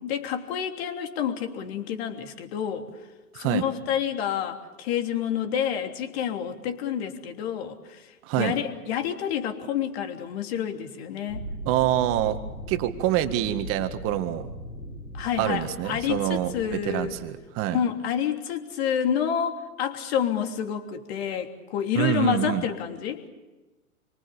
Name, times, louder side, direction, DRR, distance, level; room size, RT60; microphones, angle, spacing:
voice 1, 0.0-2.9 3.3-11.4 15.1-17.2 17.7-23.2, left 9 dB, 45° left, 5 dB, 3.2 m, -29 dB
voice 2, 3.3-3.7 8.3-8.5 11.7-12.4 12.7-14.5 15.4-17.8 22.0-22.7, right 12 dB, 30° right, 10 dB, 1.9 m, -26 dB
sound 1, 11.3-17.3, right 1 dB, 80° left, 6.9 m, -39 dB
27.5 x 24.5 x 7.0 m, 1.1 s
figure-of-eight pair, 110°, 44 cm